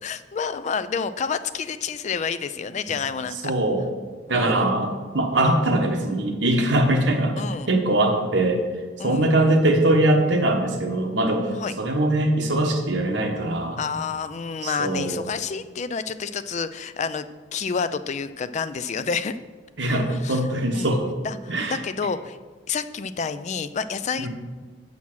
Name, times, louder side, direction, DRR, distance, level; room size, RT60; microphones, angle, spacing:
voice 1, 0.0-3.5 4.3-4.7 7.4-7.7 9.0-9.3 11.6-11.7 13.8-17.3 17.5-19.4 19.9-20.4 20.7-20.9 21.2-22.4 22.7-24.3, left 5 dB, 35° left, 12 dB, 0.3 m, -29 dB
voice 2, 3.4-3.8 4.3-7.4 7.7-8.6 9.0-11.5 11.8-13.8 14.6-15.2 19.8-21.1 21.5-21.8 24.2-24.3, right 1 dB, 70° right, 3 dB, 1.1 m, -22 dB
7.5 x 5.6 x 6.0 m, 1.4 s
head